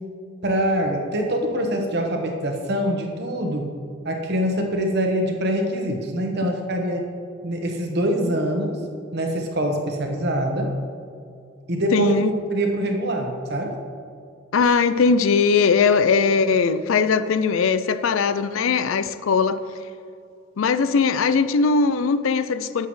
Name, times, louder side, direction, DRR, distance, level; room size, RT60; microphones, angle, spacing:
voice 1, 0.4-3.7 4.0-7.0 7.4-8.8 9.1-10.7 11.7-12.2 12.5-13.7, right 1 dB, 50° right, 2 dB, 1.1 m, -24 dB
voice 2, 11.9-12.3 14.5-19.6 20.6-22.9, left 5 dB, 75° left, 12 dB, 0.4 m, -20 dB
11.5 x 8.0 x 3.2 m, 2.3 s
head